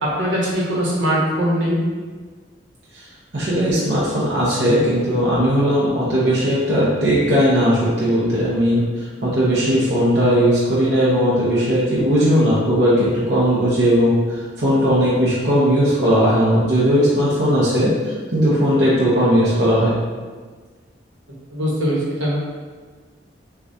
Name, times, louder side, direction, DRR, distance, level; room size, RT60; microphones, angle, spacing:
voice 1, 0.0-1.8 21.5-22.4, equal, 85° right, -5 dB, 1.2 m, -21 dB
voice 2, 3.3-8.8 9.2-19.9, equal, 60° right, -8 dB, 0.9 m, -18 dB
6.7 x 2.4 x 2.7 m, 1.4 s
head